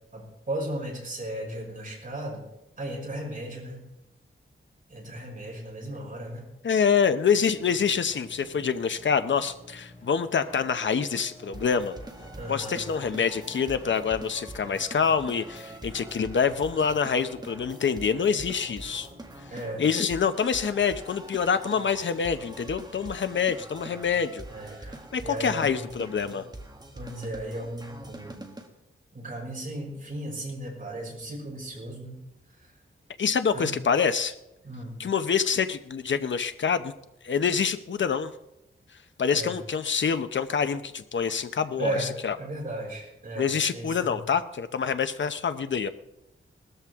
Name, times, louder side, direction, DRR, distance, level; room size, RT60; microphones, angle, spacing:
voice 1, 0.1-2.5 2.8-3.8 4.9-6.5 12.3-12.9 16.8-16.9 19.5-19.8 24.5-25.8 26.9-28.5 29.1-32.2 33.5-33.7 34.6-34.9 39.3-39.6 41.8-42.1 42.4-44.2, right 1 dB, 40° right, -3 dB, 6.0 m, -35 dB
voice 2, 6.6-11.9 12.5-19.1 19.8-24.5 25.1-26.5 33.2-34.3 35.0-36.9 37.2-38.3 39.2-42.4 43.4-45.9, left 6 dB, 65° left, 10 dB, 0.8 m, -26 dB
sound 1, 7.2-19.7, left 1 dB, 35° left, 6.7 m, -51 dB
sound 2, 11.5-28.7, right 1 dB, 20° right, 1.6 m, -44 dB
19.0 x 13.5 x 3.6 m, 0.90 s
wide cardioid pair, 140°, 21 cm